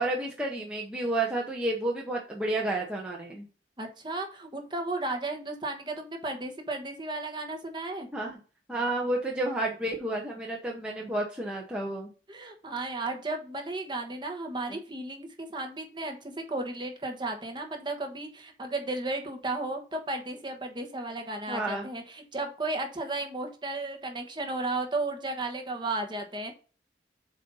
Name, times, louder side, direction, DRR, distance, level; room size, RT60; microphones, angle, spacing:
voice 1, 0.0-3.5 8.1-8.3 8.7-12.1 14.7-14.8 21.5-21.9, right 2 dB, 5° right, -2 dB, 0.8 m, -31 dB
voice 2, 3.8-8.1 12.3-26.5, right 2 dB, 25° right, 3 dB, 1.1 m, -34 dB
7.4 x 2.7 x 5.4 m, 0.37 s
head